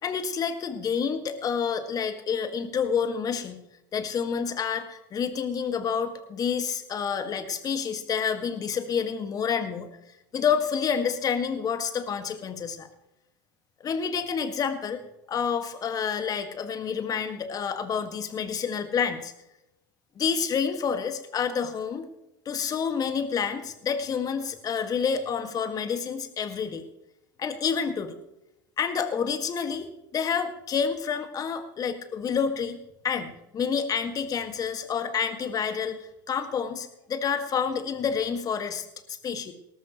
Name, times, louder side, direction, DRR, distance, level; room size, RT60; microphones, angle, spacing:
voice 1, 0.0-3.6 3.9-9.9 10.3-12.9 13.8-15.0 15.3-19.3 20.2-22.1 22.5-26.8 27.4-28.2 28.8-29.9 30.1-32.8 33.0-39.5, left 6 dB, 35° left, 8 dB, 1.8 m, -28 dB
18.5 x 13.0 x 3.1 m, 0.87 s
hypercardioid pair, 90°, 11 cm